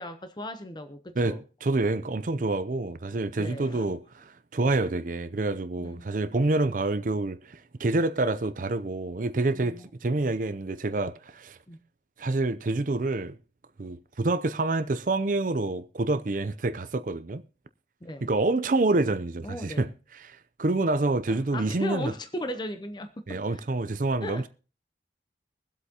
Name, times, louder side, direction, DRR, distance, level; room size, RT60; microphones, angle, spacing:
voice 1, 0.0-1.4 3.4-3.9 5.8-6.1 9.5-9.9 11.7-11.8 18.0-18.3 19.4-19.9 21.3-23.6 24.2-24.5, left 1 dB, 25° left, 0.7 m, -37 dB
voice 2, 1.2-11.6 12.2-13.4 13.8-17.4 18.2-22.1 23.3-24.5, right 2 dB, 45° right, 0.5 m, -27 dB
23.0 x 8.1 x 2.9 m
head